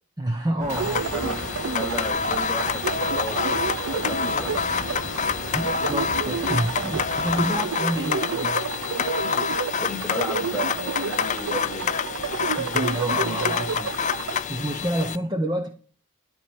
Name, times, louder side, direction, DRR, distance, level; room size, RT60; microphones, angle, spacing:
voice 1, 0.2-1.0 5.5-8.6 12.6-13.9 14.5-15.7, right 1 dB, 20° right, 3 dB, 1.1 m, -28 dB
sound 1, 0.6-7.5, right 1 dB, 35° right, 3.0 m, -37 dB
sound 2, 0.7-15.2, left 6 dB, 35° left, 0.4 m, -27 dB
sound 3, 0.7-14.4, right 6 dB, 70° right, 0.5 m, -31 dB
voice 2, 1.7-3.6 3.9-4.9 7.3-7.6 9.8-11.9, equal, 5° left, 2 dB, 2.8 m, -34 dB
13.5 x 4.6 x 8.7 m, 0.42 s
head